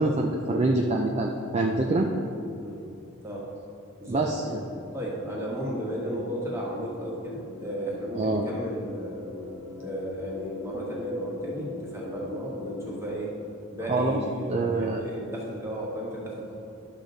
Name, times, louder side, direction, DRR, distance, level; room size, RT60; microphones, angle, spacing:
voice 1, 0.0-2.1 4.1-4.6 8.1-8.4 13.9-14.2 14.5-15.0, right 2 dB, 30° right, 1 dB, 0.5 m, -25 dB
sound 1, 4.1-13.1, left 3 dB, 70° left, 1.2 m, -41 dB
voice 2, 4.9-9.3 9.8-13.3 13.7-16.6, right 1 dB, 10° right, -4 dB, 1.6 m, -34 dB
11.5 x 6.4 x 3.9 m, 2.7 s
head